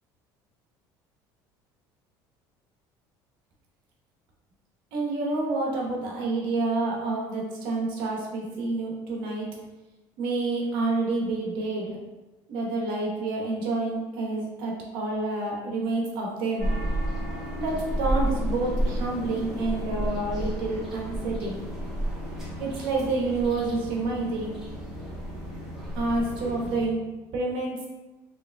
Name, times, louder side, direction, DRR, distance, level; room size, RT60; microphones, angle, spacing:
voice 1, 4.9-9.5 10.2-12.0 12.5-16.7 17.5-21.6 22.6-24.5 25.9-27.0 27.3-27.8, right 2 dB, 65° right, -1 dB, 1.1 m, -28 dB
sound 1, 16.6-26.8, right 1 dB, 5° right, 1.2 m, -31 dB
4.9 x 3.1 x 2.3 m, 1.1 s
cardioid pair, 170°, 9 cm